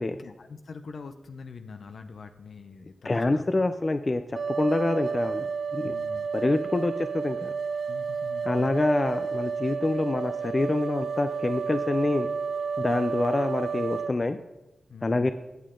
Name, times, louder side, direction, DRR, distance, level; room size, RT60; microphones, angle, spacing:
voice 1, 0.2-3.4 5.8-6.3 7.9-8.6 14.9-15.3, left 5 dB, 75° left, 8 dB, 0.7 m, -44 dB
voice 2, 3.0-5.5 5.7-6.0 6.3-7.5 8.4-12.3 12.8-14.4 15.0-15.3, left 2 dB, 35° left, 9 dB, 0.6 m, -26 dB
sound 1, 4.3-14.1, right 6 dB, 85° right, 0.5 m, -31 dB
17.5 x 6.8 x 3.8 m, 0.99 s
cardioid pair, 55°, 0 cm